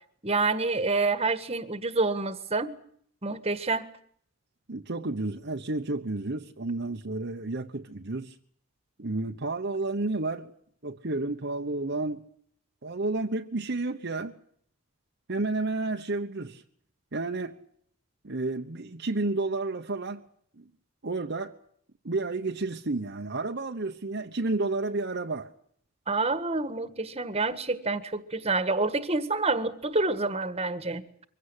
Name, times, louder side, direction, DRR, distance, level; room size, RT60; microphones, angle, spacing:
voice 1, 0.2-2.8 3.2-3.9 26.1-31.0, right 3 dB, 30° right, 1.6 m, -28 dB
voice 2, 4.7-8.3 9.0-10.5 10.8-12.2 12.8-14.3 15.3-16.6 17.1-17.6 18.2-20.2 20.6-20.7 21.0-21.5 22.0-25.5, right 2 dB, 55° right, 1.1 m, -31 dB
24.0 x 16.5 x 9.8 m
head